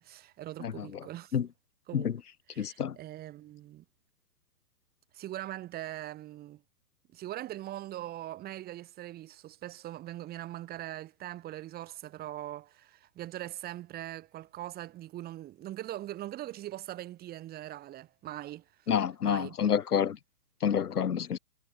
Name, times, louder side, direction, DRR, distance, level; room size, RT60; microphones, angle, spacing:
voice 1, 0.0-1.4 1.9-2.1 2.5-3.8 5.1-6.6 7.1-18.6 19.2-19.5, right 14 dB, 20° right, 5.0 m, -41 dB
voice 2, 2.6-2.9 18.9-20.2 20.6-21.4, left 8 dB, 80° left, 5.1 m, -28 dB
hypercardioid pair, 155°, 45 cm